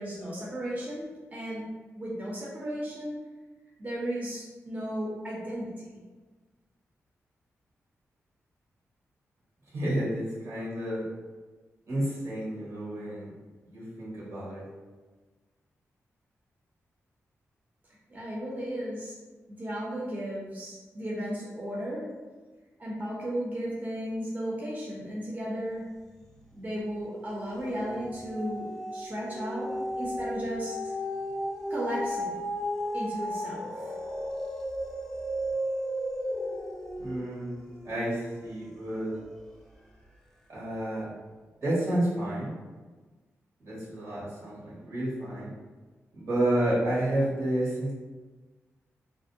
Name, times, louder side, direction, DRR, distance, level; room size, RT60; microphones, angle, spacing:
voice 1, 0.0-1.7 2.0-3.2 3.8-5.9 18.1-19.1 19.5-22.0 22.8-25.8 26.5-29.7 29.9-30.9 31.7-32.4 32.9-34.0, equal, 30° right, -6 dB, 0.6 m, -35 dB
voice 2, 9.7-11.0 11.9-13.3 13.7-14.6 37.0-37.6 37.8-39.1 40.5-41.1 41.6-42.5 43.6-45.5 46.1-47.9, right 1 dB, 75° right, -8 dB, 1.2 m, -30 dB
sound 1, 26.1-26.6 27.0-39.5 40.0-40.1, equal, 10° left, 0.4 m, -35 dB
2.5 x 2.1 x 2.6 m, 1.3 s
cardioid pair, 80°, 5 cm